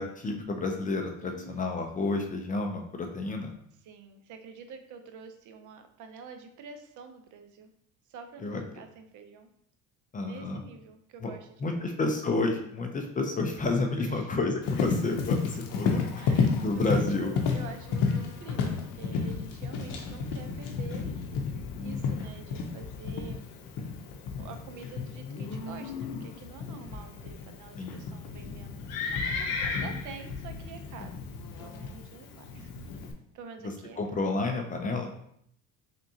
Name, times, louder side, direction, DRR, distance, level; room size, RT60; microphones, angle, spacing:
voice 1, 0.0-3.5 8.4-8.6 10.1-10.6 11.2-11.3 11.6-16.3 16.6-17.3 21.8-22.2 27.8-28.1 34.0-35.1, left 3 dB, 25° left, 4 dB, 0.5 m, -30 dB
voice 2, 1.2-1.8 3.8-7.7 8.1-9.5 10.2-11.9 14.0-14.4 16.2-21.3 21.8-23.6 24.4-31.2 31.6-32.9 33.3-34.0, right 5 dB, 60° right, 7 dB, 0.6 m, -47 dB
Livestock farm animals working animals, 14.6-33.1, left 5 dB, 75° left, 0.7 m, -32 dB
3.9 x 3.5 x 2.7 m, 0.68 s
cardioid pair, 130°, 33 cm